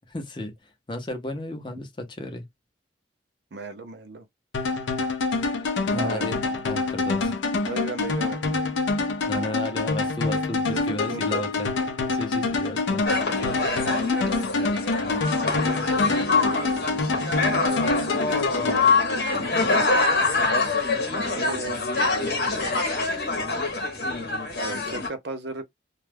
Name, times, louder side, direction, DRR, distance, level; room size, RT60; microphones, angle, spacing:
voice 1, 0.1-0.5 0.9-2.4 5.9-7.4 9.3-11.7 12.1-13.2, left 1 dB, 25° left, 0.5 m, -33 dB
voice 2, 3.5-4.3 5.9-6.3 7.6-8.4 10.6-11.4 14.0-14.8 16.2-16.9 17.5-19.9 21.1-22.7 24.5-25.6, right 2 dB, 60° right, 0.5 m, -37 dB
sound 1, 4.5-19.6, left 3 dB, 75° left, 0.5 m, -26 dB
sound 2, 13.1-25.1, left 3 dB, 55° left, 0.8 m, -25 dB
2.3 x 2.1 x 3.2 m
head